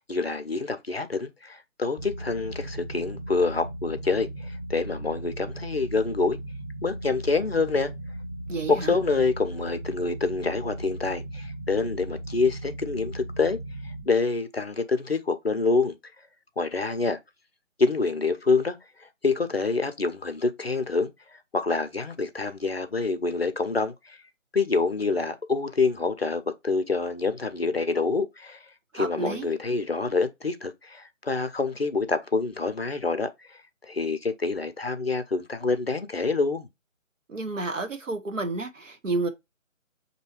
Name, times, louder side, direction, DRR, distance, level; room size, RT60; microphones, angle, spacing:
voice 1, 0.0-6.4 6.8-7.9 8.7-13.6 13.8-16.0 16.6-17.2 17.8-24.2 24.5-36.7, left 4 dB, 50° left, 0.5 m, -27 dB
sound 1, 2.0-14.0, right 1 dB, 25° right, 1.2 m, -37 dB
voice 2, 8.5-8.9 28.9-29.6 37.3-39.3, right 3 dB, 65° right, 1.0 m, -30 dB
6.2 x 2.7 x 2.9 m
figure-of-eight pair, 155°, 40 cm